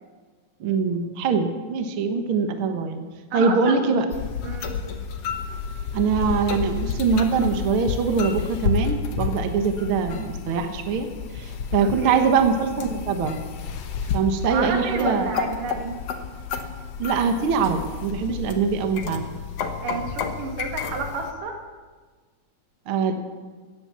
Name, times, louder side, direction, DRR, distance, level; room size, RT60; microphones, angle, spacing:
voice 1, 0.6-3.0 3.3-4.0 5.9-11.1 11.3-13.4 14.1-15.3 17.0-19.3 22.9-23.1, right 5 dB, 55° right, 6 dB, 1.6 m, -23 dB
voice 2, 3.3-3.9 4.4-4.7 11.8-12.3 14.0-14.2 14.5-15.9 19.8-21.6, right 4 dB, 85° right, 3 dB, 3.5 m, -31 dB
sound 1, 4.1-21.3, left 6 dB, 65° left, 1.8 m, -31 dB
16.5 x 10.0 x 7.3 m, 1.4 s
omnidirectional pair, 3.7 m